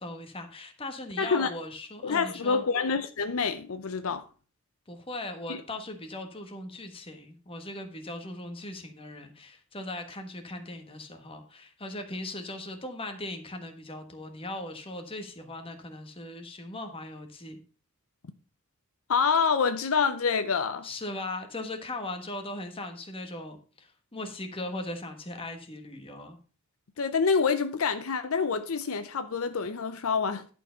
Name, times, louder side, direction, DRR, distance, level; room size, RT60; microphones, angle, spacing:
voice 1, 0.0-2.6 4.9-17.6 20.8-26.4, left 1 dB, 25° left, 1.3 m, -39 dB
voice 2, 1.2-1.5 2.0-4.2 5.5-5.6 19.1-20.9 27.0-30.5, left 5 dB, 70° left, 0.6 m, -27 dB
11.0 x 4.6 x 5.6 m
head